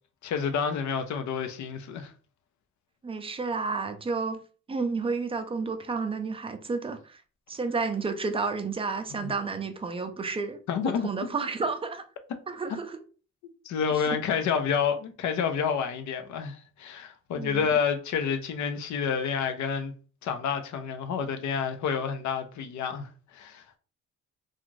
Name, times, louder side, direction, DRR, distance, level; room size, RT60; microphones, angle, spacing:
voice 1, 0.2-2.1 9.1-9.3 10.7-11.3 13.6-19.9 20.2-23.6, left 7 dB, 70° left, 0.6 m, -29 dB
voice 2, 3.0-4.4 4.7-7.2 7.5-10.6 10.8-12.1 12.5-13.0 14.1-14.2 17.3-17.7, right 4 dB, 20° right, 0.5 m, -31 dB
2.5 x 2.4 x 3.1 m
cardioid pair, 90°, 30 cm